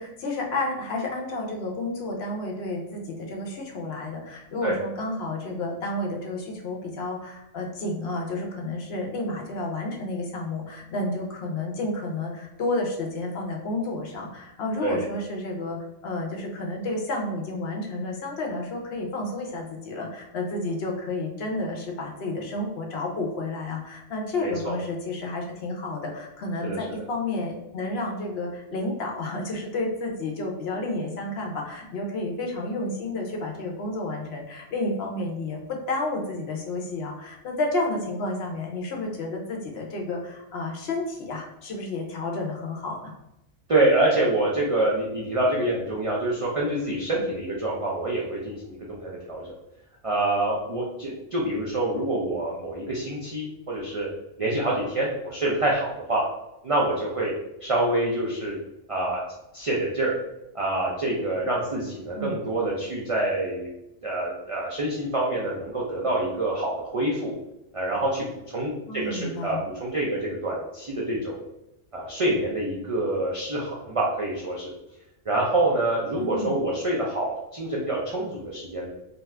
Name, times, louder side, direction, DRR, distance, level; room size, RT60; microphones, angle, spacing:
voice 1, 0.0-15.8 16.0-43.1 62.1-62.4 68.9-69.6 76.2-76.5, left 2 dB, 65° left, 0 dB, 0.8 m, -31 dB
voice 2, 24.4-24.8 26.6-26.8 43.7-49.5 50.0-54.1 54.4-56.2 56.6-57.3 57.6-58.5 58.9-59.2 59.5-60.1 60.5-63.7 64.0-67.3 67.7-71.4 71.9-74.7 75.3-78.9, right 2 dB, 60° right, -4 dB, 0.3 m, -26 dB
2.7 x 2.3 x 3.2 m, 0.88 s
omnidirectional pair, 1.3 m